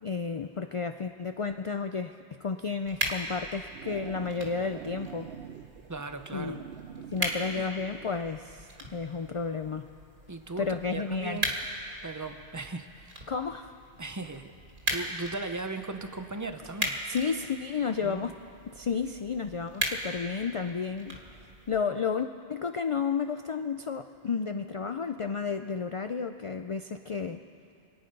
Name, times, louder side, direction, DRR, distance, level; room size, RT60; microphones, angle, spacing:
voice 1, 0.0-5.3 6.3-6.6 7.1-9.9 10.6-11.4 13.3-13.7 17.1-18.3 18.7-21.4 21.7-27.4, left 5 dB, 55° left, 8 dB, 0.3 m, -32 dB
sound 1, 2.8-21.8, right 1 dB, 50° right, 2.0 m, -39 dB
sound 2, 3.3-8.3, right 9 dB, 70° right, 0.8 m, -46 dB
voice 2, 5.9-6.6 10.3-11.5 12.0-13.3 14.0-14.5 14.9-17.0 18.0-18.3, right 3 dB, 20° right, 8 dB, 0.6 m, -38 dB
27.0 x 9.5 x 5.3 m, 2.6 s
omnidirectional pair, 1.1 m